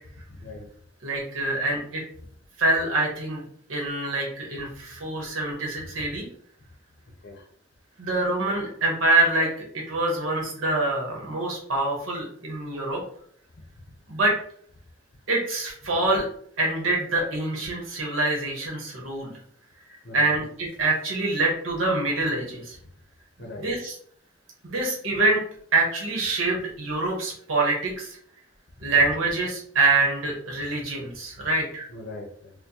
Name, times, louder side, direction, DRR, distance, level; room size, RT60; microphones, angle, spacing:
voice 1, 0.3-0.7 5.8-6.0 7.2-7.5 20.0-20.3 23.4-23.7 30.6-30.7 31.4-31.5 31.9-32.5, left 2 dB, 55° left, 1 dB, 0.6 m, -41 dB
voice 2, 1.0-2.0 2.6-3.4 3.7-6.3 8.0-9.5 9.9-13.0 14.1-14.4 15.3-16.3 16.6-19.3 20.1-22.8 23.6-23.9 24.7-25.4 25.7-28.2 28.8-31.8, right 2 dB, 85° right, -1 dB, 1.0 m, -25 dB
4.3 x 2.2 x 2.7 m, 0.62 s
head